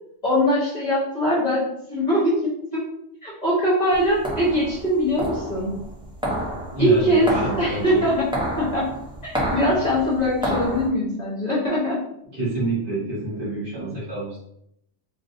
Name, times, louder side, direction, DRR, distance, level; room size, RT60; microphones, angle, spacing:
voice 1, 0.2-2.8 3.2-5.7 6.8-8.3 8.6-8.9 9.2-12.0, equal, 35° left, -7 dB, 1.0 m, -22 dB
sound 1, 3.9-10.9, equal, 5° right, 0.4 m, -30 dB
voice 2, 6.7-8.0 12.3-14.4, right 2 dB, 45° right, -7 dB, 1.6 m, -28 dB
4.0 x 2.5 x 2.6 m, 0.76 s
omnidirectional pair, 1.3 m